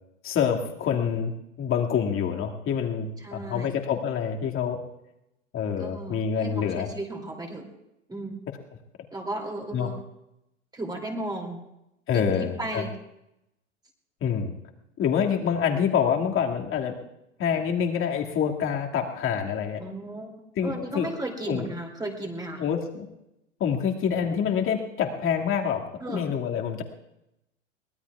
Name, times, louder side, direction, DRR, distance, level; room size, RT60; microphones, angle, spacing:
voice 1, 0.2-1.3 1.6-4.8 5.5-6.9 9.7-9.9 12.1-12.8 14.2-14.5 15.0-16.9 17.4-19.8 20.6-21.1 21.5-21.7 22.6-23.1 23.6-25.8 26.1-26.8, left 7 dB, 35° left, 1 dB, 2.2 m, -26 dB
voice 2, 3.2-3.8 5.8-7.7 8.1-8.4 9.1-10.0 10.7-11.6 12.1-12.9 19.8-22.6 26.0-26.3, right 2 dB, 10° right, 1 dB, 2.7 m, -35 dB
23.5 x 19.0 x 2.4 m, 0.87 s
hypercardioid pair, 95°, 37 cm